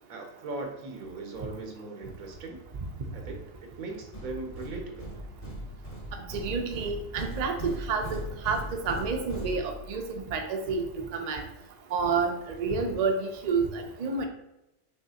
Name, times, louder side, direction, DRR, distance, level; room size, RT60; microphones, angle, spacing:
voice 1, 0.1-2.6 3.1-5.1, right 3 dB, 85° right, 3 dB, 1.3 m, -39 dB
sound 1, 4.1-10.1, equal, 30° left, 1.1 m, -39 dB
voice 2, 6.1-11.4 11.9-14.3, right 4 dB, 50° right, 3 dB, 0.5 m, -30 dB
5.8 x 3.1 x 2.8 m, 0.90 s
omnidirectional pair, 1.4 m